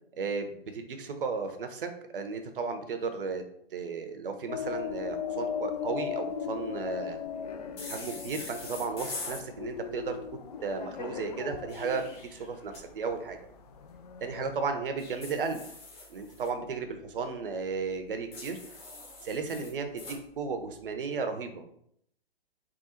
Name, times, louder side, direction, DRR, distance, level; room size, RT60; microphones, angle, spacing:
voice 1, 0.2-3.4 3.7-7.2 7.9-10.2 10.6-12.0 12.3-13.4 14.2-15.6 16.1-18.6 19.3-21.6, right 4 dB, 60° right, 7 dB, 0.8 m, -34 dB
sound 1, 4.5-14.6, left 7 dB, 40° left, 0.4 m, -38 dB
sound 2, 7.8-9.4 11.5-12.8 15.0-16.5 18.3-20.2, left 3 dB, 20° left, 1.1 m, -43 dB
3.6 x 2.3 x 4.4 m, 0.71 s
figure-of-eight pair, 130°, 30 cm